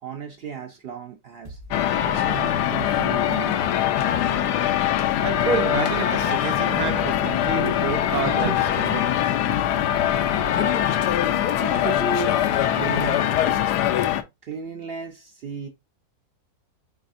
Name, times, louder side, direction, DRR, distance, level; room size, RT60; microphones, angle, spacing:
voice 1, 0.0-1.6 2.0-3.6 8.4-8.6 9.0-9.1 11.6-13.3 14.4-15.7, right 5 dB, 85° right, 0.5 m, -34 dB
sound 1, 1.4-12.1, equal, 10° right, 1.2 m, -45 dB
sound 2, 1.7-14.2, left 11 dB, 85° left, 1.1 m, -22 dB
voice 2, 5.2-9.2, right 7 dB, 65° right, 1.1 m, -29 dB
4.8 x 4.2 x 2.5 m
omnidirectional pair, 1.7 m